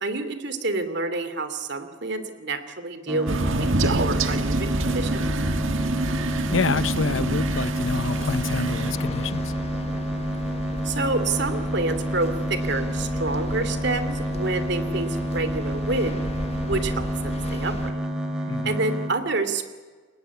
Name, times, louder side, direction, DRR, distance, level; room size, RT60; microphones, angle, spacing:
voice 1, 0.0-5.3 10.8-16.2 16.7-18.1 18.6-19.7, right 3 dB, 55° right, 10 dB, 2.8 m, -28 dB
sound 1, 3.1-19.1, equal, 5° right, 3.5 m, -29 dB
Crow, 3.3-8.9, right 2 dB, 75° right, 1.6 m, -27 dB
voice 2, 6.3-9.5 18.5-18.7, left 4 dB, 70° left, 15 dB, 0.8 m, -28 dB
sound 2, 8.1-17.9, left 1 dB, 30° left, 1.5 m, -35 dB
29.5 x 17.5 x 9.6 m, 1.5 s
head